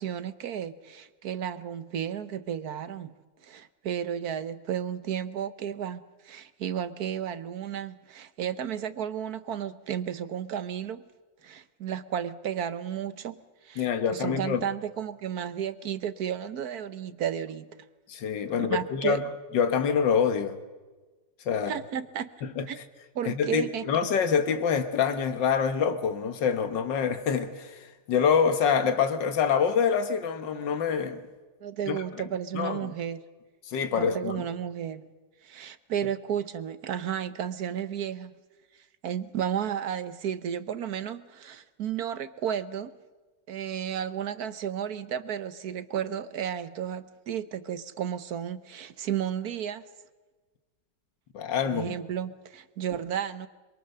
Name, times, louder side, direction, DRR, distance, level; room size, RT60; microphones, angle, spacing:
voice 1, 0.0-3.1 3.4-11.0 11.4-17.8 18.6-19.2 21.7-22.3 22.7-22.8 23.1-23.9 31.6-33.2 33.8-35.1 35.4-38.3 39.0-42.9 43.5-49.9 51.6-53.5, right 9 dB, 65° right, 1.3 m, -33 dB
voice 2, 13.8-14.6 18.1-19.2 19.5-20.6 21.5-21.7 22.4-22.7 23.3-31.2 31.9-32.0 32.5-32.9 33.6-34.4 51.3-52.0, left 7 dB, 85° left, 2.0 m, -26 dB
27.0 x 22.5 x 6.8 m
omnidirectional pair, 1.9 m